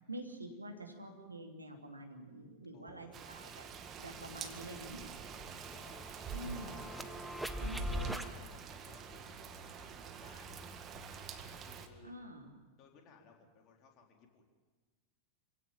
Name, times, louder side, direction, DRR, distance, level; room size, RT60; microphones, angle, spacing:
voice 1, 0.1-3.6 4.0-5.1 6.3-6.9 7.6-8.3 12.0-12.5, right 1 dB, 85° right, 2 dB, 2.9 m, -47 dB
voice 2, 2.7-3.3 5.5-7.2 7.6-10.5 11.4-12.1 12.8-14.4, left 5 dB, 35° left, 1 dB, 4.1 m, -61 dB
sound 1, 2.9-3.0 3.3-8.3, equal, 5° right, 1.2 m, -43 dB
Rain, 3.1-11.9, right 6 dB, 30° right, 1.9 m, -47 dB
27.0 x 17.0 x 7.6 m, 1.3 s
figure-of-eight pair, 90°, 0 cm